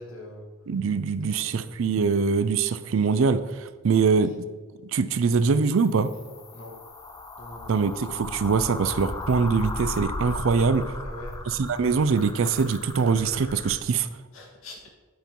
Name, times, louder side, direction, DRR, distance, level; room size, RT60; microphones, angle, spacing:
voice 1, 0.0-0.5 1.2-1.6 6.5-6.8 7.4-7.7 11.0-11.4 14.3-14.9, left 1 dB, 80° left, -1 dB, 1.5 m, -43 dB
voice 2, 0.7-4.4 4.9-6.1 7.7-10.9 11.5-14.1, right 5 dB, 75° right, 13 dB, 0.4 m, -23 dB
sound 1, 5.6-13.8, left 2 dB, 15° left, 0.4 m, -36 dB
9.4 x 5.3 x 4.5 m, 1.3 s
head